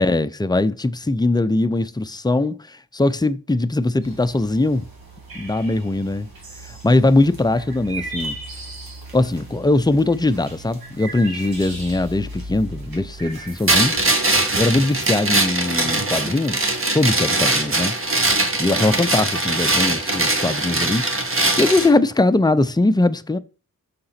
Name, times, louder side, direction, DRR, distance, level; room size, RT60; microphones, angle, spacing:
voice 1, 0.0-4.9 5.3-6.3 6.6-8.3 9.1-14.0 14.6-17.9 18.6-21.0 21.6-23.4, left 2 dB, 10° left, 0.5 m, -20 dB
sound 1, 4.0-13.6, right 1 dB, 80° right, 2.4 m, -36 dB
sound 2, 13.7-21.9, right 2 dB, 35° right, 1.4 m, -21 dB
5.9 x 3.8 x 5.7 m
cardioid pair, 60°, 35 cm